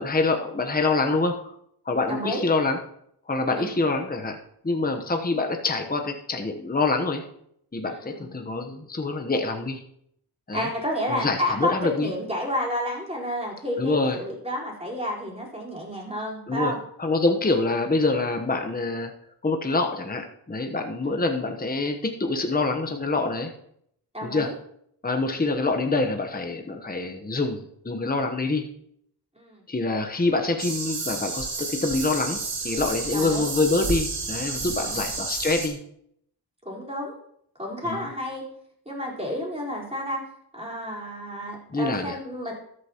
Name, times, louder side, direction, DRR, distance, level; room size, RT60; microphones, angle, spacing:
voice 1, 0.0-1.5 1.9-2.8 3.3-4.4 4.6-7.2 7.7-9.8 10.5-10.7 11.1-12.1 13.8-14.2 16.5-16.7 17.0-19.1 19.4-23.5 24.2-24.5 25.0-28.7 29.7-35.8 37.8-38.1 41.7-42.2, left 3 dB, 20° left, 4 dB, 1.0 m, -26 dB
voice 2, 2.1-2.4 3.6-3.7 7.9-8.3 10.5-16.8 24.1-24.6 29.4-29.6 33.1-33.5 36.6-37.2 37.6-38.4 38.9-40.2 40.5-42.5, equal, 15° right, -3 dB, 4.2 m, -30 dB
sound 1, 30.6-35.7, right 4 dB, 85° right, 2.0 m, -31 dB
13.5 x 9.7 x 3.0 m, 0.71 s
wide cardioid pair, 65°, 42 cm